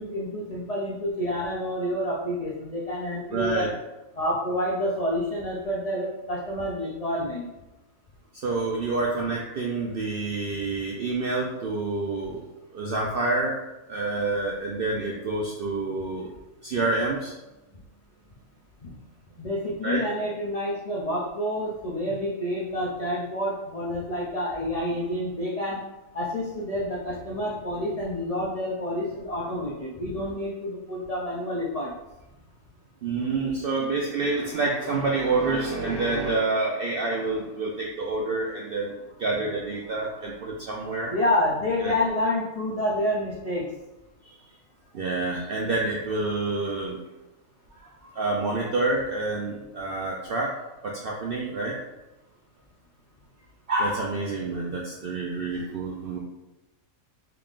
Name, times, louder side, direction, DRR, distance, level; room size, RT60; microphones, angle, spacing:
voice 1, 0.0-3.7 4.1-7.5 18.8-18.9 19.4-25.8 26.1-31.9 41.1-43.7, left 1 dB, 80° left, -4 dB, 0.3 m, -28 dB
voice 2, 3.3-3.7 8.4-12.4 12.7-13.6 13.9-16.3 16.6-17.3 19.8-20.0 33.0-38.9 39.2-41.1 41.8-41.9 44.9-47.0 48.0-50.5 50.8-51.8 53.7-56.2, right 3 dB, 70° right, -2 dB, 0.5 m, -28 dB
3.7 x 3.4 x 2.4 m, 0.99 s
omnidirectional pair, 1.5 m